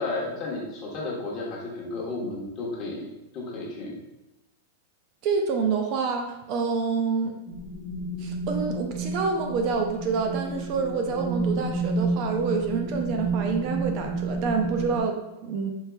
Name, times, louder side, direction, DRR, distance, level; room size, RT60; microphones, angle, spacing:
voice 1, 0.0-3.0 3.3-4.0, left 2 dB, 35° left, -4 dB, 1.1 m, -32 dB
voice 2, 5.2-7.3 8.2-15.7, right 5 dB, 40° right, 3 dB, 0.4 m, -27 dB
sound 1, 7.5-15.0, right 3 dB, 10° left, 0.7 m, -30 dB
4.5 x 2.8 x 2.2 m, 0.97 s
supercardioid pair, 145°, 0 cm